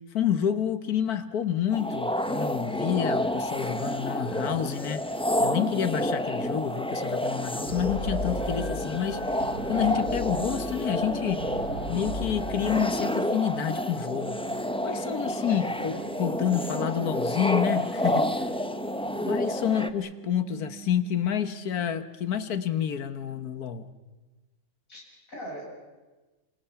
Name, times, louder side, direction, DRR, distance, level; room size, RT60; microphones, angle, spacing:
voice 1, 0.1-5.0 5.4-9.2 9.7-11.5 11.9-14.4 14.8-15.9 16.2-18.5 19.2-23.9, left 9 dB, 80° left, 11 dB, 1.6 m, -29 dB
sound 1, 1.7-19.9, left 1 dB, 5° left, 0.6 m, -29 dB
sound 2, 7.7-12.8, equal, 85° right, 5.1 m, -37 dB
sound 3, 9.0-21.8, right 13 dB, 45° right, 2.3 m, -45 dB
voice 2, 15.5-16.0 24.9-25.6, equal, 60° left, -3 dB, 8.2 m, -39 dB
27.5 x 26.5 x 5.8 m, 1.2 s
omnidirectional pair, 1.6 m